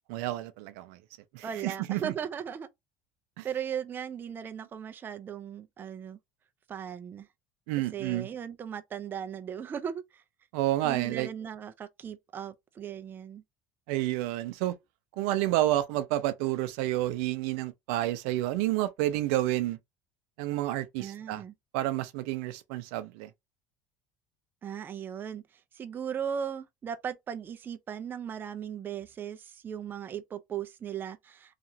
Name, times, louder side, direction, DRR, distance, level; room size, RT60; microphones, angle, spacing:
voice 1, 0.1-1.0 1.3-2.1 3.4-3.5 7.7-8.3 10.5-11.3 13.9-14.7 15.2-19.8 20.4-21.4 21.7-23.3, right 15 dB, 85° right, 0.5 m, -30 dB
voice 2, 1.4-2.7 3.4-6.2 6.7-7.3 7.9-10.2 10.8-13.4 21.0-21.5 24.6-25.4 25.7-31.6, right 8 dB, 25° right, 0.4 m, -37 dB
2.9 x 2.4 x 2.6 m
cardioid pair, 120°, 8 cm